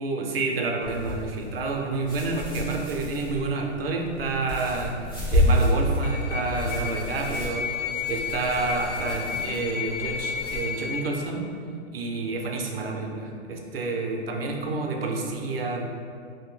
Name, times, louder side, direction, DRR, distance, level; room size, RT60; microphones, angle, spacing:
voice 1, 0.0-7.8 8.1-11.4 11.9-15.9, right 3 dB, 55° right, 1 dB, 0.5 m, -29 dB
sound 1, 0.8-10.6, equal, 20° left, 0.4 m, -29 dB
sound 2, 6.0-11.1, left 6 dB, 80° left, 0.5 m, -32 dB
2.7 x 2.6 x 3.7 m, 2.4 s
hypercardioid pair, 175°, 36 cm